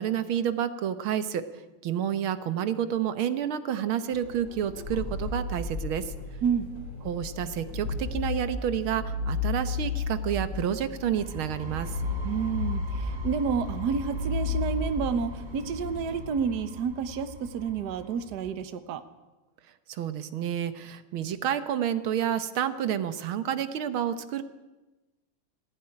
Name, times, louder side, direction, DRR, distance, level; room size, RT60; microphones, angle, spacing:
voice 1, 0.0-1.4 1.8-6.1 7.1-12.0 19.9-24.4, right 9 dB, 80° right, 12 dB, 1.9 m, -29 dB
sound 1, 4.1-16.2, left 4 dB, 60° left, 4.6 m, -34 dB
sound 2, 11.0-18.6, equal, 35° right, 0.8 m, -40 dB
voice 2, 12.2-19.0, right 6 dB, 55° right, 11 dB, 1.5 m, -30 dB
19.0 x 15.0 x 9.8 m, 1.1 s
omnidirectional pair, 2.3 m